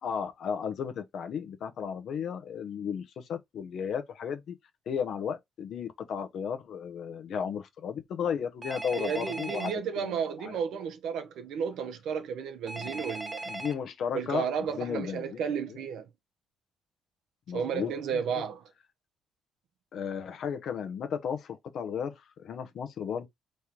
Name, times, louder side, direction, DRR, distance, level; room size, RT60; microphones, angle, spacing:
voice 1, 0.0-4.6 4.9-10.6 12.8-13.0 13.5-15.4 17.5-18.2 19.9-23.3, left 7 dB, 70° left, 0.7 m, -34 dB
Telephone, 8.6-9.7 12.7-13.7, right 2 dB, 20° right, 1.2 m, -38 dB
voice 2, 8.9-13.6 14.1-16.1 17.5-18.6, right 7 dB, 80° right, 0.8 m, -33 dB
3.7 x 3.1 x 2.9 m
cardioid pair, 90°, 0 cm